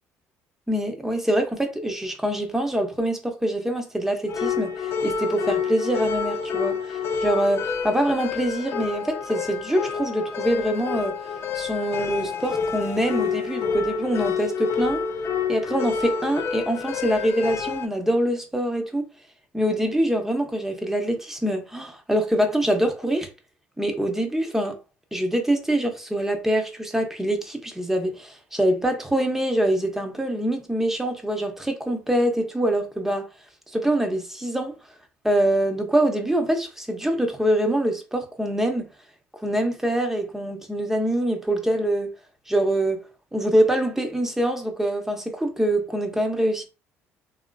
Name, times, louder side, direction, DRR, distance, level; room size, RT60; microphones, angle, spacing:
voice 1, 0.7-11.1 11.5-15.0 15.5-19.0 19.5-23.3 23.8-24.8 25.1-33.3 33.7-34.8 35.2-38.9 39.4-42.1 42.5-43.0 43.3-46.7, right 1 dB, 5° right, 0.8 m, -24 dB
sound 1, 4.3-17.9, left 6 dB, 45° left, 0.4 m, -28 dB
2.9 x 2.5 x 2.2 m
supercardioid pair, 75°, 6 cm